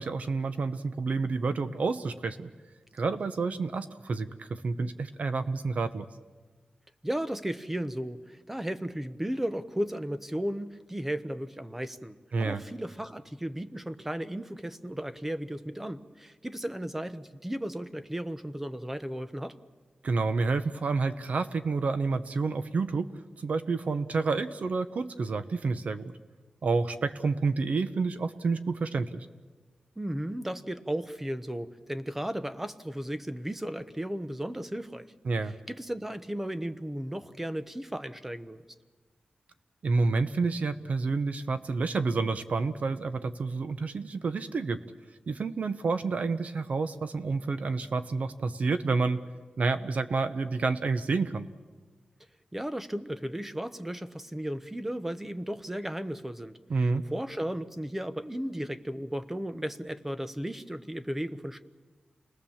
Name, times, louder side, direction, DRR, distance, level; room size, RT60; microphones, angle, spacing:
voice 1, 0.0-2.5 2.9-6.1 12.3-12.6 20.0-23.1 23.4-26.1 26.6-29.3 35.2-35.5 39.8-44.8 45.3-49.2 49.6-51.5 56.7-57.0, right 4 dB, 60° right, 10 dB, 0.9 m, -29 dB
voice 2, 7.0-19.5 30.0-35.1 35.4-38.6 52.5-56.6 57.1-61.6, equal, 10° right, 11 dB, 0.8 m, -35 dB
29.5 x 20.0 x 7.2 m, 1.4 s
wide cardioid pair, 145°, 3 cm